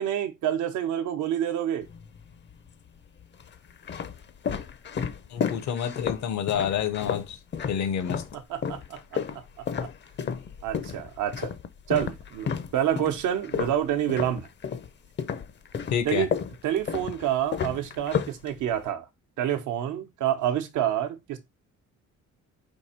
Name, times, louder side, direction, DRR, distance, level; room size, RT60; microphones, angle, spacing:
voice 1, 0.0-1.9 8.5-9.2 10.6-11.5 11.9-14.5 16.0-16.3 16.6-19.1 19.4-21.4, right 10 dB, 80° right, 0.9 m, -28 dB
sound 1, 1.8-2.5 3.2-8.3 8.6-14.9 15.2-18.9, left 7 dB, 40° left, 0.5 m, -32 dB
voice 2, 5.3-7.4 7.7-8.2 15.9-16.3, left 8 dB, 65° left, 0.8 m, -28 dB
4.6 x 2.6 x 4.3 m
cardioid pair, 90°, 30 cm